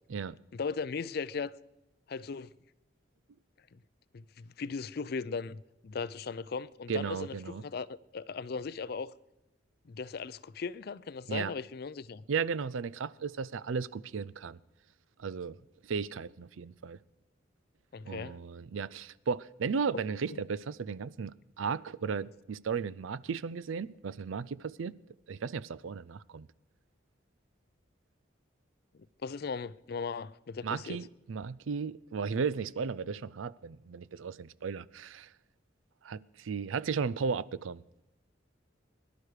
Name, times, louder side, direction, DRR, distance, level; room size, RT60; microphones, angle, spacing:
voice 1, 0.5-1.5 2.1-2.5 3.7-3.8 4.1-9.1 9.9-12.2 17.9-18.4 20.3-20.4 28.9-31.0, left 5 dB, 50° left, 0.4 m, -38 dB
voice 2, 6.9-7.6 11.3-11.5 12.3-14.6 15.2-15.6 15.8-17.0 18.0-24.9 25.3-26.5 30.6-35.3 36.0-37.8, right 5 dB, 85° right, 0.5 m, -35 dB
21.5 x 11.5 x 4.9 m
head